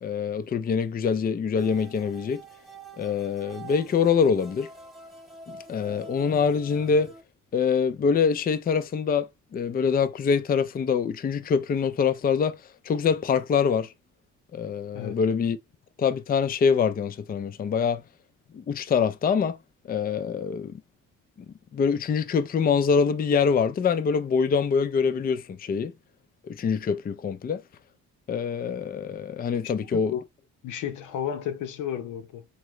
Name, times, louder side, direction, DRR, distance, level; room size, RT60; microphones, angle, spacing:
voice 1, 0.0-2.4 3.0-4.7 5.5-7.1 7.5-12.6 12.8-13.9 14.5-15.6 16.0-18.0 18.5-19.6 19.8-20.7 21.7-25.9 26.4-27.6 28.3-30.1, left 6 dB, 30° left, 0.5 m, -24 dB
sound 1, 1.6-7.2, right 3 dB, ahead, 1.1 m, -46 dB
voice 2, 29.9-30.2 30.6-32.5, left 9 dB, 85° left, 0.9 m, -32 dB
3.7 x 2.9 x 3.1 m
cardioid pair, 90°, 30 cm